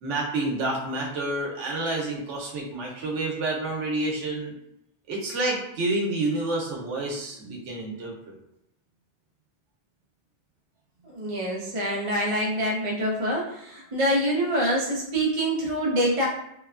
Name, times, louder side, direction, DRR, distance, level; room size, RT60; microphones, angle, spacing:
voice 1, 0.0-4.5 5.1-8.4, right 2 dB, 85° right, -2 dB, 1.0 m, -29 dB
voice 2, 11.0-16.3, equal, 35° right, -3 dB, 0.5 m, -25 dB
3.0 x 2.2 x 2.3 m, 0.80 s
omnidirectional pair, 1.2 m